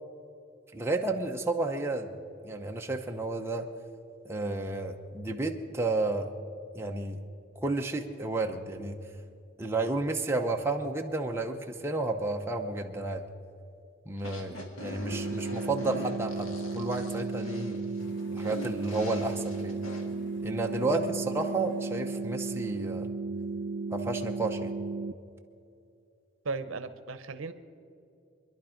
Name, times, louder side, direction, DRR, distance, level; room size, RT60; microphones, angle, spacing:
voice 1, 0.7-2.2 2.4-3.7 4.2-6.3 6.7-7.2 7.6-9.0 9.6-13.2 14.1-17.8 18.3-19.8 20.4-23.1 23.9-24.8, right 2 dB, 10° right, 2 dB, 0.8 m, -31 dB
sound 1, 14.2-20.0, left 1 dB, 80° left, 1.9 m, -42 dB
sound 2, 15.1-25.1, right 3 dB, 45° right, 0.4 m, -35 dB
sound 3, 18.0-23.0, left 1 dB, 60° left, 1.4 m, -53 dB
voice 2, 26.4-27.5, right 3 dB, 80° right, 11 dB, 0.8 m, -36 dB
24.5 x 11.0 x 5.2 m, 2.5 s
head